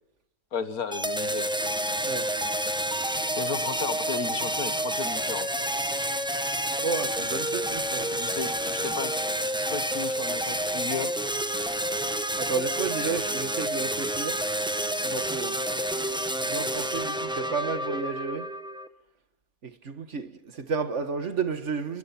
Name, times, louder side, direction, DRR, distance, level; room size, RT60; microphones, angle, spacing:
voice 1, 0.5-1.7 3.3-5.5 8.1-9.2 9.6-11.2, left 5 dB, 80° left, 1.9 m, -34 dB
sound 1, 0.9-18.9, right 1 dB, 5° right, 0.8 m, -29 dB
voice 2, 6.8-8.1 12.4-14.4 15.0-15.6 16.4-18.5 19.6-22.0, right 5 dB, 55° right, 1.7 m, -32 dB
29.0 x 23.0 x 5.8 m
omnidirectional pair, 1.5 m